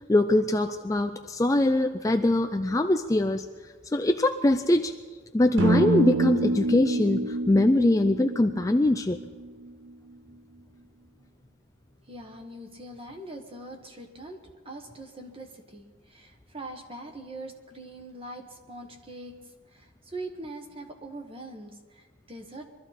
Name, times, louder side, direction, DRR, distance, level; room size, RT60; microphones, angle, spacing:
voice 1, 0.0-3.5 3.9-4.9 5.3-9.2, left 1 dB, 15° left, 7 dB, 0.4 m, -23 dB
sound 1, 5.6-9.7, right 2 dB, 65° right, 1.1 m, -27 dB
voice 2, 12.0-19.4 19.7-22.7, right 2 dB, 25° right, 4 dB, 1.4 m, -42 dB
23.0 x 13.5 x 4.2 m, 1.5 s
head